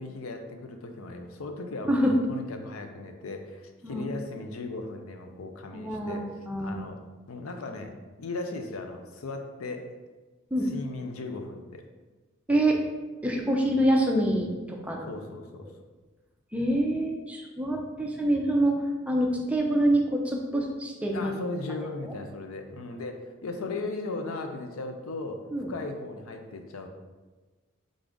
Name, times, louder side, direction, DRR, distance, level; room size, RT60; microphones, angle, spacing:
voice 1, 0.0-6.3 6.6-7.0 7.3-9.9 10.7-11.8 13.7-13.8 15.1-15.7 21.1-26.9, left 3 dB, 85° left, 5 dB, 0.5 m, -37 dB
voice 2, 5.7-6.8 10.5-10.7 12.5-12.8 13.2-15.1 16.5-21.3 22.0-22.1 25.5-25.7, right 1 dB, 5° right, 0 dB, 0.4 m, -26 dB
3.8 x 3.7 x 3.4 m, 1.3 s
head